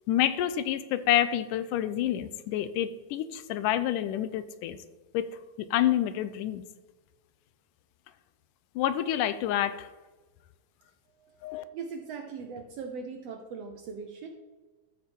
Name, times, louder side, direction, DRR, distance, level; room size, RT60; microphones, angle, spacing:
voice 1, 0.1-4.8 5.1-5.3 5.6-6.6 8.8-9.9 11.4-11.6, left 12 dB, 85° left, 13 dB, 2.2 m, -28 dB
voice 2, 11.2-14.3, right 5 dB, 70° right, 4 dB, 1.5 m, -40 dB
13.0 x 6.8 x 4.3 m, 1.2 s
omnidirectional pair, 3.7 m